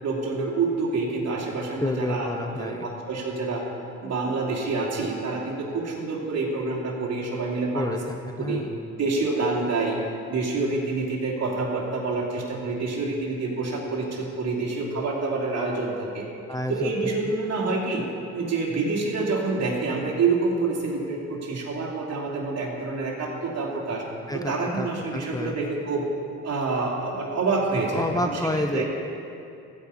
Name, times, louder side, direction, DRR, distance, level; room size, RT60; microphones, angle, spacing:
voice 1, 0.0-2.3 2.6-3.6 4.0-8.0 8.4-8.6 9.0-10.0 10.3-16.3 16.7-18.0 18.3-24.0 24.3-26.0 26.4-28.8, right 3 dB, 60° right, -2 dB, 2.9 m, -27 dB
voice 2, 1.8-2.9 7.7-8.7 16.5-16.9 17.2-17.3 24.3-25.5 27.9-28.8, left 1 dB, 10° left, 4 dB, 0.7 m, -29 dB
15.0 x 5.7 x 8.3 m, 2.6 s
cardioid pair, 90°, 30 cm